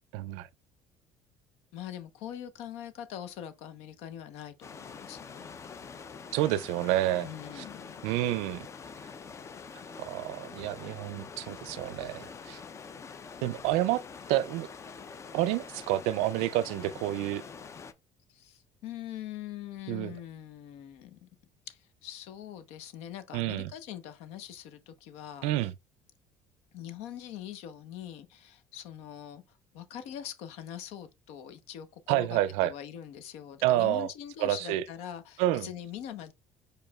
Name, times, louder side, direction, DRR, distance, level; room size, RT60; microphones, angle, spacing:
voice 1, 0.1-0.5 6.3-7.3 7.6-7.7 8.0-8.7 10.0-12.6 13.4-14.0 14.3-14.7 15.3-17.4 19.9-20.2 23.3-23.7 25.4-25.7 32.1-32.7 33.6-34.1 34.4-34.8 35.4-35.7, right 14 dB, 85° right, 0.4 m, -29 dB
voice 2, 1.7-5.5 7.2-8.0 18.3-21.3 21.7-25.7 26.7-29.4 29.7-36.3, left 10 dB, 80° left, 0.8 m, -43 dB
sound 1, 4.6-17.9, left 5 dB, 25° left, 0.5 m, -45 dB
4.9 x 4.6 x 2.3 m
cardioid pair, 125°, 11 cm